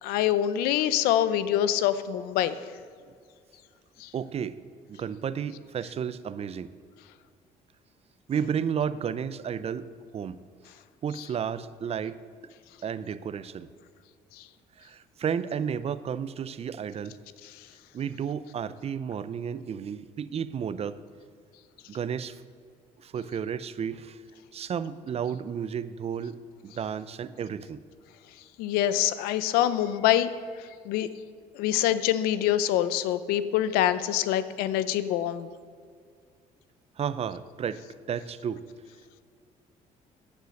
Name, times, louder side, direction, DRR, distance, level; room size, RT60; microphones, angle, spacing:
voice 1, 0.0-2.5 4.0-4.1 11.2-11.3 14.4-14.5 28.6-30.3 30.6-31.1 31.5-35.5, left 11 dB, 90° left, 14 dB, 0.6 m, -25 dB
voice 2, 4.1-4.6 4.9-6.7 8.3-9.9 10.1-10.4 11.0-12.2 12.8-13.7 14.8-17.2 17.9-21.0 21.9-22.4 23.0-24.2 24.5-26.4 26.6-27.8 37.0-37.8 38.1-38.6, right 7 dB, 40° right, 15 dB, 0.6 m, -32 dB
9.6 x 9.3 x 6.4 m, 2.1 s
cardioid pair, 90°, 15 cm